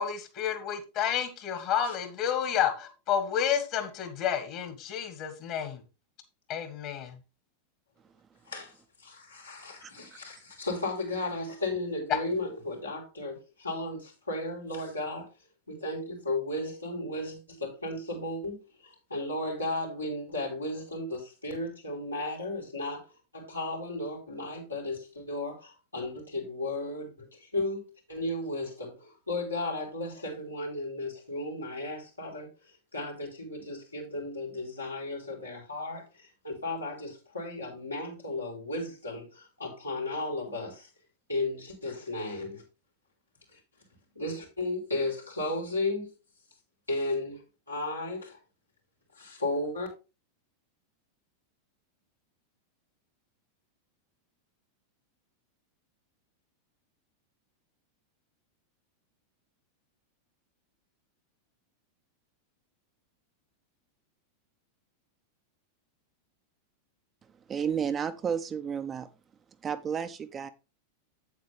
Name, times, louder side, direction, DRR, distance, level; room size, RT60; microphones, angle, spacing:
voice 1, 0.0-5.8 6.5-7.1 12.1-12.2, left 9 dB, 45° left, 1.9 m, -30 dB
voice 2, 9.0-15.3 15.7-23.0 23.3-32.5 32.9-40.9 41.3-42.6 43.5-43.6 44.2-46.1 46.9-48.4 49.2-49.9, left 2 dB, 85° left, 3.7 m, -34 dB
voice 3, 67.5-69.1 69.6-70.5, right 7 dB, 25° right, 0.7 m, -32 dB
8.4 x 8.1 x 3.3 m
figure-of-eight pair, 90°, 0 cm